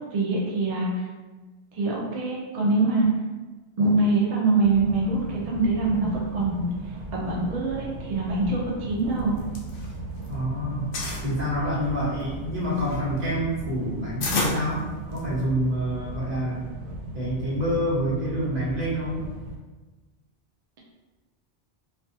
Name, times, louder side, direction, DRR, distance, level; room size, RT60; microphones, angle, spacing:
voice 1, 0.1-1.0 1.7-3.1 3.8-6.7 7.1-8.6 8.9-9.3, right 3 dB, 65° right, -4 dB, 0.3 m, -24 dB
sound 1, 4.6-19.6, right 1 dB, 90° right, 0.9 m, -37 dB
sound 2, 9.2-10.4 10.6-11.3 11.9-15.5, left 2 dB, 60° left, 0.7 m, -32 dB
voice 2, 10.3-10.9 11.2-16.6 17.1-19.2, equal, 40° right, -7 dB, 0.9 m, -27 dB
2.4 x 2.2 x 2.6 m, 1.3 s
omnidirectional pair, 1.2 m